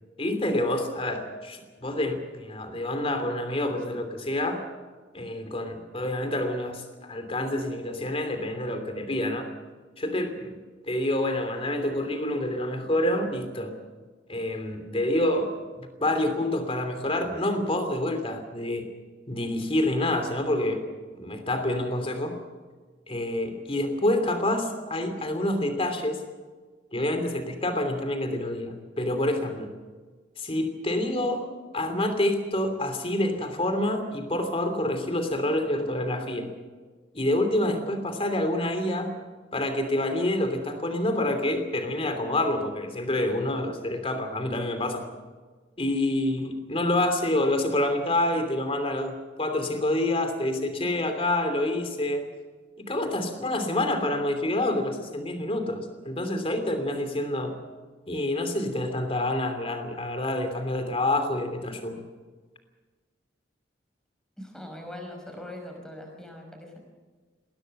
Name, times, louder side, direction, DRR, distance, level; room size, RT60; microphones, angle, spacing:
voice 1, 0.2-4.6 5.1-9.5 10.0-10.6 10.9-13.7 14.3-15.5 15.8-18.9 19.3-20.8 21.1-22.4 23.1-26.2 26.9-29.7 30.4-31.5 31.7-36.5 37.1-39.1 39.5-45.0 45.8-52.2 52.8-57.5 58.1-62.0, left 1 dB, 30° left, 7 dB, 3.0 m, -27 dB
voice 2, 64.4-66.8, left 1 dB, 5° left, 2 dB, 5.4 m, -41 dB
21.5 x 17.0 x 7.8 m, 1.4 s
head